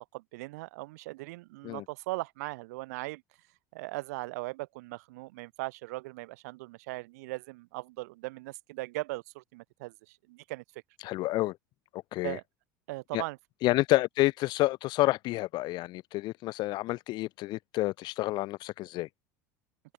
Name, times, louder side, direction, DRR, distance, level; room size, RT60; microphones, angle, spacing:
voice 1, 0.1-3.2 3.7-10.8 12.2-12.4 12.9-13.4, right 22 dB, 75° right, 4.5 m, -39 dB
voice 2, 11.0-11.6 11.9-12.4 13.1-13.2 13.6-19.1, left 18 dB, 55° left, 1.6 m, -29 dB
open air
supercardioid pair, 95°, 9 cm